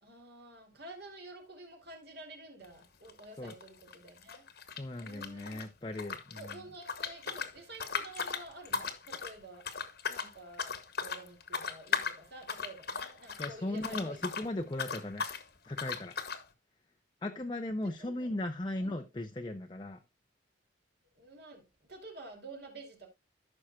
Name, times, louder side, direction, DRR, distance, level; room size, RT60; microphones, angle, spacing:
voice 1, 0.0-4.4 5.0-5.7 6.3-14.5 17.8-18.3 18.8-19.1 21.2-23.1, right 2 dB, 55° right, 2.6 m, -50 dB
sound 1, 2.6-2.8 3.1-5.6 5.9-14.5 14.7-15.4 15.8-16.4, left 5 dB, 50° left, 1.2 m, -37 dB
voice 2, 4.8-6.6 13.4-15.3 15.6-16.1 17.2-20.0, left 1 dB, 25° left, 0.6 m, -37 dB
14.5 x 6.3 x 2.3 m
head